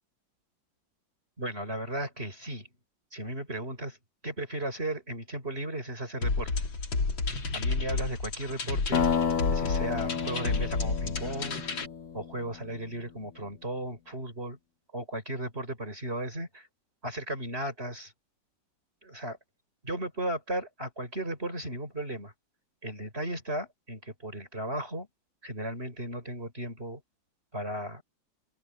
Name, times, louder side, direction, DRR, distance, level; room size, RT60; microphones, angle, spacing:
voice 1, 1.4-2.7 3.1-4.0 4.2-6.5 7.5-9.1 9.5-11.6 12.1-14.6 14.9-16.7 17.0-18.1 19.0-19.4 19.8-22.3 22.8-25.1 25.4-27.0 27.5-28.0, right 1 dB, 30° right, 5.5 m, -35 dB
sound 1, 6.2-11.9, left 3 dB, 85° left, 3.7 m, -31 dB
sound 2, 8.9-12.7, left 7 dB, 50° left, 1.4 m, -31 dB
open air
omnidirectional pair, 2.1 m